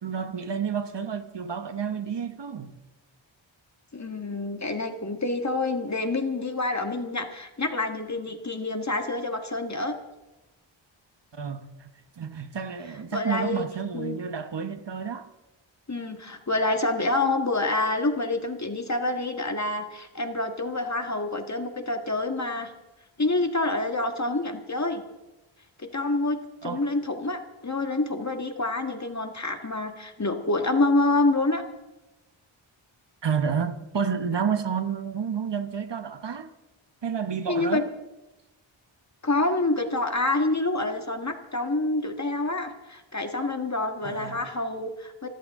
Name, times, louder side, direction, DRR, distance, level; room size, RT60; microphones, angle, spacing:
voice 1, 0.0-2.8 11.3-15.3 26.6-26.8 33.2-36.5 37.0-37.9 44.0-44.5, right 7 dB, 60° right, 1.1 m, -30 dB
voice 2, 3.9-10.0 13.1-13.7 13.9-14.2 15.9-22.7 23.2-25.0 25.8-26.4 26.6-31.6 37.5-37.8 39.2-45.3, left 2 dB, 35° left, 1.8 m, -27 dB
26.5 x 13.0 x 3.7 m
wide cardioid pair, 95°, 49 cm